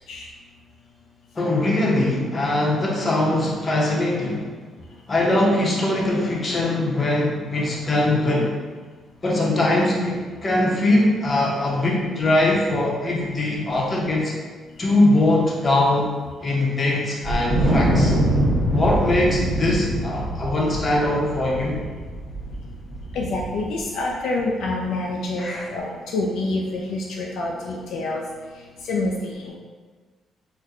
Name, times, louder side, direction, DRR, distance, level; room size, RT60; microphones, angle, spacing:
voice 1, 1.4-4.5 5.1-8.5 9.2-14.3 14.8-16.1 16.4-18.2 18.7-21.8 25.4-25.7, left 1 dB, 35° left, -3 dB, 0.8 m, -21 dB
Wind, 17.2-23.8, right 1 dB, 55° right, 1.1 m, -23 dB
voice 2, 23.1-28.2 28.8-29.6, left 2 dB, 80° left, -2 dB, 0.3 m, -27 dB
4.1 x 2.1 x 2.4 m, 1.4 s
cardioid pair, 90°, 0 cm